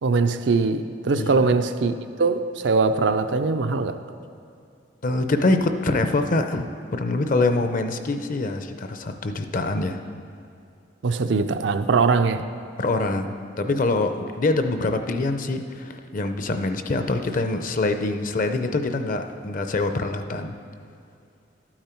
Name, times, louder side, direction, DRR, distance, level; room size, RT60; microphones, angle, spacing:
voice 1, 0.0-4.0 11.0-12.4, right 4 dB, 75° right, 0.5 m, -22 dB
voice 2, 1.1-1.5 5.0-6.7 6.9-10.0 12.8-20.5, left 2 dB, 50° left, 0.6 m, -24 dB
12.0 x 8.8 x 4.5 m
head